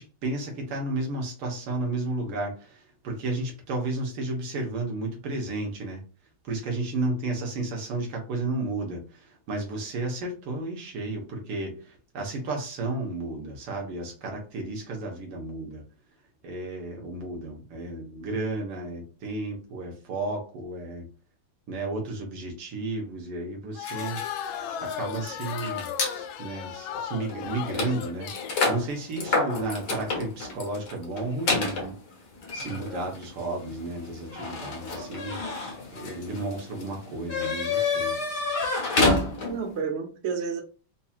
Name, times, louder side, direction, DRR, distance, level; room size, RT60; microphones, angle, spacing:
voice 1, 0.0-2.8 3.0-6.0 6.4-9.0 9.5-15.8 16.4-21.0 21.7-24.2 24.8-28.3 28.7-31.9 32.5-35.4 35.9-38.1, right 2 dB, 80° right, 2.1 m, -32 dB
sound 1, 23.7-28.6, left 9 dB, 75° left, 1.2 m, -36 dB
sound 2, 23.8-26.2 26.9-27.0 27.3-39.7, left 3 dB, 55° left, 1.6 m, -30 dB
voice 2, 39.4-40.6, right 5 dB, 50° right, 0.8 m, -32 dB
4.7 x 2.8 x 2.4 m
omnidirectional pair, 2.4 m